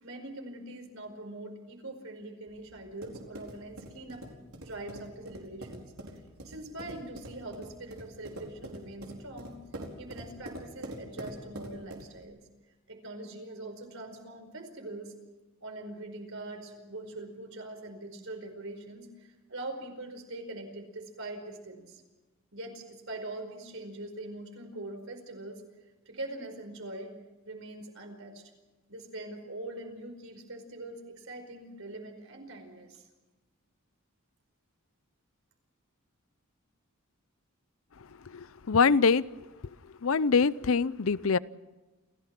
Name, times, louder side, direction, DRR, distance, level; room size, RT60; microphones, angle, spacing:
voice 1, 0.0-4.3 4.6-5.9 6.4-9.6 10.0-12.4 12.9-15.1 15.6-22.0 22.5-25.6 26.0-27.1 27.4-28.5 28.9-33.0, right 2 dB, 70° right, 5 dB, 5.0 m, -43 dB
sound 1, 2.5-12.2, right 1 dB, 85° right, 4.6 m, -45 dB
voice 2, 38.3-39.2 40.0-41.4, left 5 dB, 70° left, 18 dB, 0.6 m, -24 dB
29.0 x 16.5 x 6.0 m, 1.1 s
head